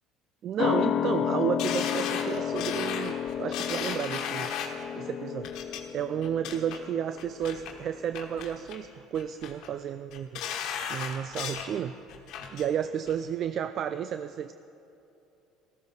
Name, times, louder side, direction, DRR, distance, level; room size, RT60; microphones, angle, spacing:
voice 1, 0.4-4.5 5.0-5.5 5.9-10.4 10.9-12.0 12.5-14.5, right 9 dB, 50° right, 11 dB, 0.3 m, -32 dB
sound 1, 0.6-7.7 8.0-8.1, left 9 dB, 50° left, 0.4 m, -31 dB
sound 2, 1.6-4.8 5.4-5.8 6.2-6.8 7.2-7.7 8.1-8.8 9.1-9.7 10.1-11.7 12.1-12.7 13.1-13.2, left 8 dB, 70° left, 1.3 m, -35 dB
14.5 x 14.0 x 4.0 m, 2.8 s
supercardioid pair, 105°, 0 cm